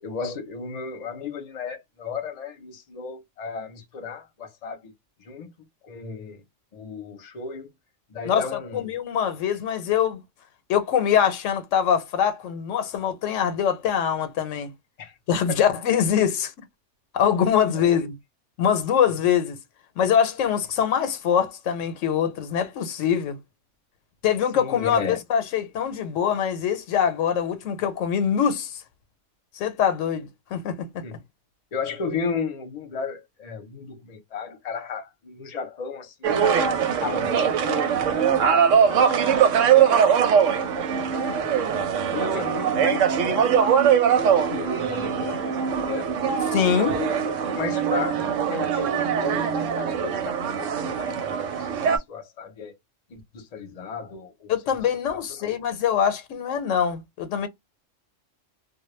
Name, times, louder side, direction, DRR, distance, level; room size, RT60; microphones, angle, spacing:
voice 1, 0.0-4.9 5.2-5.5 5.8-6.4 6.7-7.7 8.1-8.8 15.0-15.1 15.5-15.6 17.8-18.0 24.5-25.2 31.0-31.2 31.7-36.5 36.9-41.4 42.1-43.7 44.2-46.1 46.9-52.7 53.1-54.5 55.3-55.5, left 5 dB, 40° left, 0.6 m, -35 dB
voice 2, 8.7-10.2 10.7-14.7 15.3-16.5 17.1-18.1 18.6-19.6 20.0-23.4 24.2-28.8 29.6-31.0 46.5-47.0 54.5-57.5, left 8 dB, 85° left, 1.0 m, -23 dB
sound 1, 36.2-52.0, right 7 dB, 90° right, 1.0 m, -22 dB
2.2 x 2.1 x 3.0 m
omnidirectional pair, 1.3 m